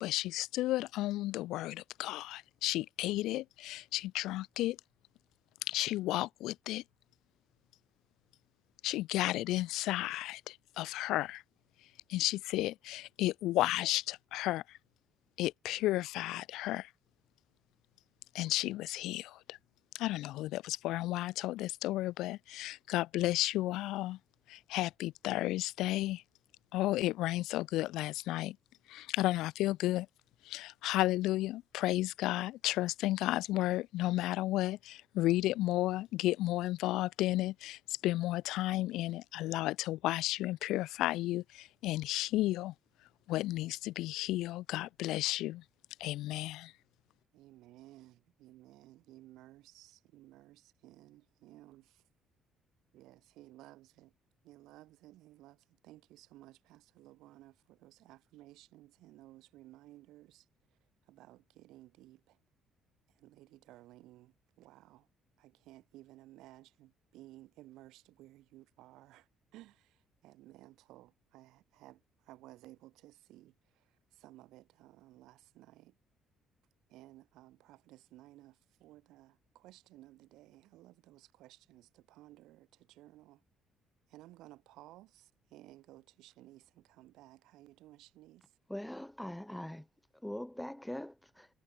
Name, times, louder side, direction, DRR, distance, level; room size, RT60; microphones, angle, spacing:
voice 1, 0.0-4.8 5.7-6.8 8.8-11.4 12.1-14.6 15.4-16.9 18.3-19.6 19.9-24.2 24.5-26.2 26.7-28.6 28.9-30.1 30.5-42.7 43.3-45.6 46.0-46.7, left 16 dB, 90° left, 0.4 m, -33 dB
voice 2, 47.3-52.0 52.9-54.1 54.4-60.5 61.1-62.4 63.2-65.1 65.4-73.8 74.1-75.9 76.9-83.4 84.1-88.5, right 16 dB, 85° right, 3.3 m, -57 dB
voice 3, 88.7-89.9 90.2-91.5, left 1 dB, 5° left, 2.4 m, -42 dB
cardioid pair, 180°, 0 cm